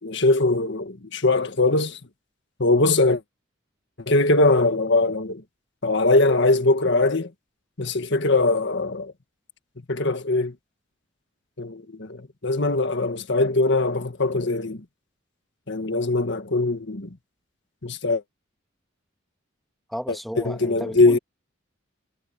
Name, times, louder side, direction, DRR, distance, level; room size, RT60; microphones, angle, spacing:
voice 1, 0.0-2.0 2.6-3.2 4.0-5.4 5.8-7.3 7.8-9.1 9.9-10.5 11.6-14.8 15.7-17.1 17.8-18.2 20.1-21.2, left 2 dB, 60° left, 1.7 m, -21 dB
voice 2, 19.9-21.2, equal, ahead, 2.0 m, -33 dB
head